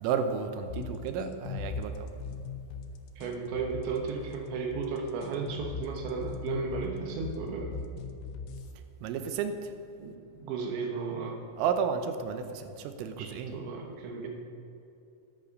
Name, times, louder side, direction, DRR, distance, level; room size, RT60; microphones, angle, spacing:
voice 1, 0.0-2.1 9.0-9.5 11.6-13.5, right 6 dB, 90° right, 8 dB, 3.5 m, -32 dB
sound 1, 0.7-8.7, left 5 dB, 85° left, 3.4 m, -39 dB
voice 2, 3.2-7.8 10.0-10.1 10.4-11.4 13.2-14.3, right 5 dB, 75° right, 2 dB, 3.4 m, -34 dB
13.5 x 10.0 x 5.3 m, 2.7 s
omnidirectional pair, 5.6 m